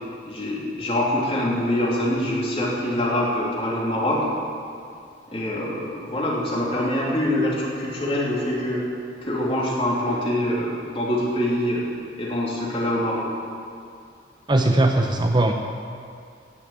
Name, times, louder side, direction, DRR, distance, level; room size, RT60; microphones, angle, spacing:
voice 1, 0.2-4.2 5.3-8.8 9.2-11.8 12.1-13.3, left 1 dB, 30° left, -5 dB, 3.1 m, -24 dB
voice 2, 14.5-15.5, right 2 dB, 25° right, 4 dB, 0.6 m, -19 dB
16.0 x 7.1 x 8.6 m, 2.4 s
head